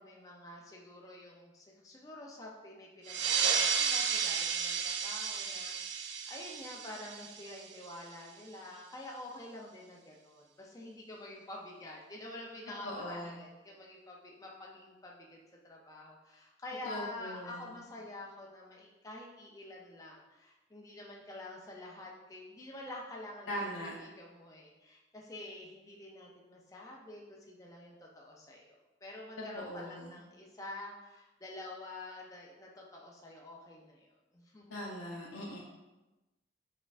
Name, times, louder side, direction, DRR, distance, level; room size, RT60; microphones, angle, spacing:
voice 1, 0.0-15.4 15.6-28.7 29.0-34.1 34.3-34.7, left 2 dB, 20° left, -2 dB, 0.4 m, -48 dB
sound 1, 3.1-8.1, right 6 dB, 65° right, 0.3 m, -33 dB
voice 2, 12.8-13.4 16.8-17.8 23.5-23.9 29.5-30.1 34.7-35.6, equal, 85° left, -4 dB, 0.6 m, -40 dB
4.2 x 3.6 x 2.4 m, 1.1 s
head